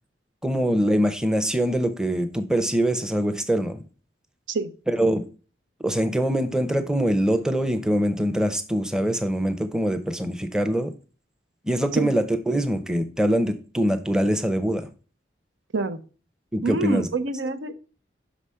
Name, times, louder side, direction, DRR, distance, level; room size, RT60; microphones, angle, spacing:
voice 1, 0.4-3.8 4.9-5.2 5.8-10.9 11.6-14.9 16.5-17.1, equal, 5° right, 0.6 m, -23 dB
voice 2, 16.6-17.7, right 3 dB, 90° right, 0.8 m, -26 dB
6.0 x 4.9 x 5.5 m
head